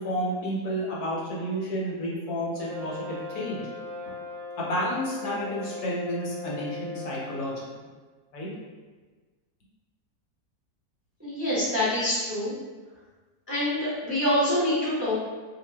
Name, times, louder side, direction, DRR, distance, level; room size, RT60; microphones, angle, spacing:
voice 1, 0.0-3.6 4.0-4.1 4.6-7.6 8.3-8.5, equal, 75° left, -5 dB, 1.2 m, -31 dB
Brass instrument, 2.6-7.5, left 3 dB, 65° right, 0.9 m, -38 dB
voice 2, 11.2-12.5 13.5-15.2, left 1 dB, 15° right, -10 dB, 0.6 m, -26 dB
2.5 x 2.2 x 3.2 m, 1.3 s
omnidirectional pair, 1.7 m